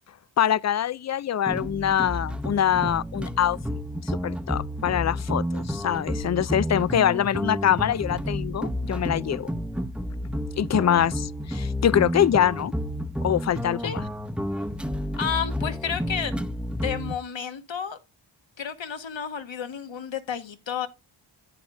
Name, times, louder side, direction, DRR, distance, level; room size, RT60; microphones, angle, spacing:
voice 1, 0.4-3.6 4.1-9.5 10.6-12.7 13.2-14.0, left 10 dB, 35° left, 0.4 m, -24 dB
sound 1, 1.5-17.1, equal, ahead, 0.8 m, -30 dB
voice 2, 15.2-16.3 16.8-18.0 18.6-20.9, left 7 dB, 65° left, 1.7 m, -31 dB
10.5 x 8.4 x 2.2 m
cardioid pair, 55°, 48 cm